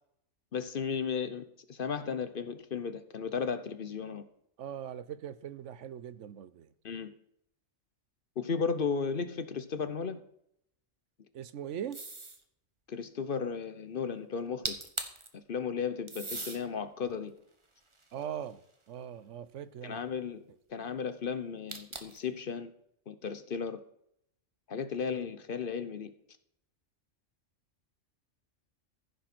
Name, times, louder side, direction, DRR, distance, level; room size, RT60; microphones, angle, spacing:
voice 1, 0.5-4.2 6.8-7.1 8.4-10.2 12.9-14.8 15.3-17.3 19.8-20.4 20.7-22.7 23.1-23.8 24.7-26.1, left 6 dB, 50° left, 1.0 m, -35 dB
voice 2, 4.6-6.7 11.3-12.0 18.1-18.6 18.9-20.0, right 9 dB, 75° right, 1.1 m, -40 dB
sound 1, 11.9-12.4 14.4-14.5 14.6-15.3 16.1-16.6 17.3-18.7 21.7-22.3, right 3 dB, 25° right, 1.2 m, -39 dB
15.0 x 6.4 x 6.1 m
omnidirectional pair, 1.2 m